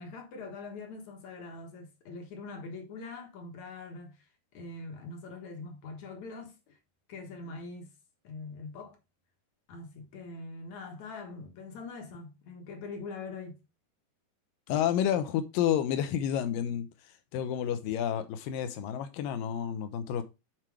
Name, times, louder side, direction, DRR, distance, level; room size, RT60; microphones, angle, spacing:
voice 1, 0.0-4.2 4.5-6.8 7.1-7.9 8.2-9.0 9.7-13.6, left 3 dB, 60° left, 2.0 m, -43 dB
voice 2, 14.7-20.2, left 9 dB, 75° left, 2.1 m, -30 dB
7.6 x 4.5 x 4.9 m
omnidirectional pair, 4.7 m